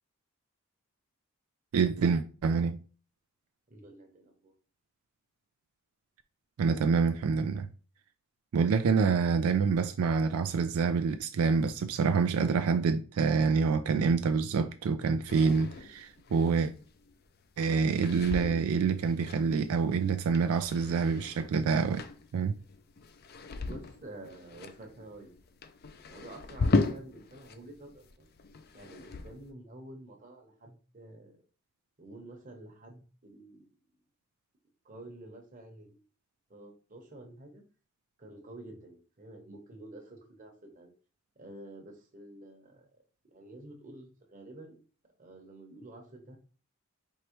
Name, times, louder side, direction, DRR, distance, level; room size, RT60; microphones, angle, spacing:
voice 1, 1.7-2.8 6.6-7.7 8.5-16.7 17.6-22.0 22.3-22.5, right 5 dB, 85° right, 0.3 m, -27 dB
voice 2, 3.7-4.5 23.6-25.4 26.1-28.3 28.7-31.4 32.0-33.7 34.8-36.0 36.5-37.6 38.2-40.9 41.4-42.9 43.2-44.8 45.2-46.4, right 1 dB, 35° right, 1.0 m, -49 dB
sound 1, 15.3-27.6 27.9-29.5, left 3 dB, 45° left, 0.4 m, -37 dB
4.7 x 3.0 x 3.0 m
head